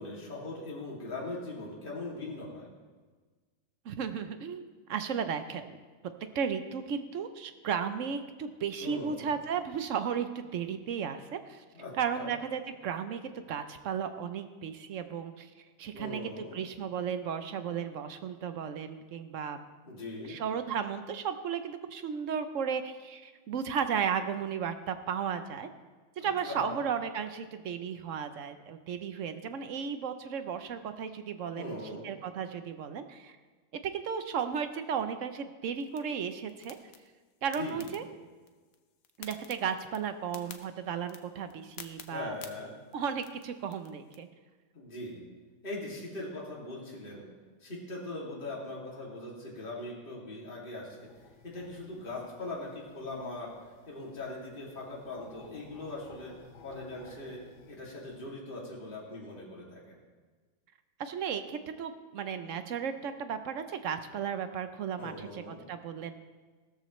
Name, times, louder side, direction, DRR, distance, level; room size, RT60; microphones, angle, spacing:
voice 1, 0.0-2.7 8.8-9.4 11.7-12.3 15.9-16.6 19.8-20.4 26.2-26.8 31.5-32.1 37.5-37.9 42.1-42.7 44.7-45.3 45.6-47.3 47.6-51.1 51.4-53.5 53.9-56.3 56.6-57.4 57.7-59.9 65.0-65.6, left 2 dB, 25° left, -4 dB, 2.6 m, -40 dB
voice 2, 3.8-5.8 6.3-11.6 11.9-15.5 15.8-19.6 20.2-25.7 26.2-31.8 32.0-33.4 33.8-36.8 37.4-38.0 39.2-42.4 42.9-44.3 61.0-66.1, right 7 dB, 65° right, 9 dB, 0.7 m, -34 dB
sound 1, 35.8-44.2, left 7 dB, 55° left, 1.1 m, -53 dB
sound 2, 51.0-58.2, left 4 dB, 90° left, 2.3 m, -57 dB
16.5 x 13.0 x 3.2 m, 1.4 s
omnidirectional pair, 2.1 m